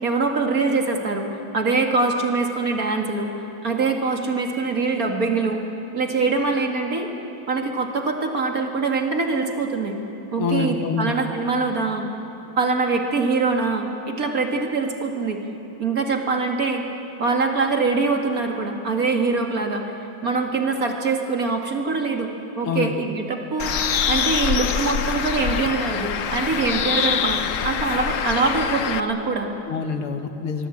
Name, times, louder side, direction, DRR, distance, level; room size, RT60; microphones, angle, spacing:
voice 1, 0.0-3.3 3.6-5.6 5.9-7.1 7.5-10.0 10.3-12.1 12.6-15.4 15.8-16.8 17.2-22.3 22.6-29.5, right 4 dB, 40° right, 3 dB, 2.4 m, -23 dB
voice 2, 10.4-11.1 22.6-22.9 29.7-30.7, left 6 dB, 85° left, 7 dB, 2.3 m, -26 dB
Bird, 23.6-29.0, left 8 dB, 60° left, 0.8 m, -24 dB
24.5 x 23.0 x 8.7 m, 3.0 s
omnidirectional pair, 2.3 m